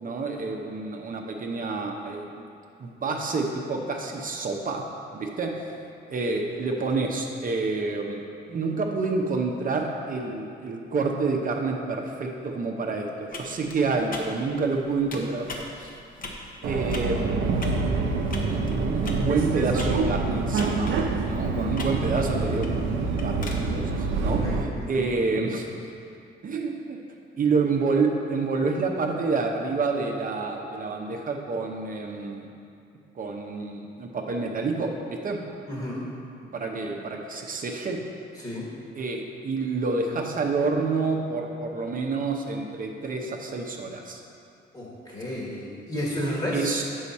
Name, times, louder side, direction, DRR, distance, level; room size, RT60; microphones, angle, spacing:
voice 1, 0.0-2.4 2.8-4.8 5.1-5.7 6.1-15.9 16.6-17.4 18.5-20.9 21.2-25.7 26.4-27.0 27.4-32.5 33.2-35.4 36.5-38.0 39.0-44.2 46.5-46.8, right 4 dB, 45° right, 1 dB, 0.7 m, -28 dB
sound 1, 13.3-23.6, left 2 dB, 45° left, 0.9 m, -41 dB
Subway metro underground, 16.6-24.6, right 4 dB, 85° right, 0.6 m, -26 dB
voice 2, 21.4-21.8 24.3-25.1 35.7-36.1 38.3-38.7 44.7-46.8, left 1 dB, 25° left, -5 dB, 1.6 m, -32 dB
6.8 x 5.6 x 4.2 m, 2.5 s
cardioid pair, 90°, 20 cm